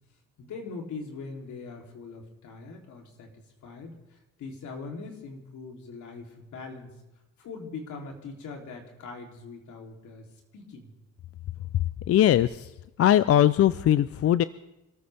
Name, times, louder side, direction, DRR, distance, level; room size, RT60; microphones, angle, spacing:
voice 1, 0.4-6.9 7.4-10.3 10.5-10.9, left 4 dB, 75° left, 2 dB, 3.3 m, -41 dB
voice 2, 12.1-12.7 13.0-14.4, left 11 dB, 50° left, 16 dB, 0.5 m, -20 dB
27.0 x 14.0 x 3.5 m, 0.98 s
cardioid pair, 90°, 30 cm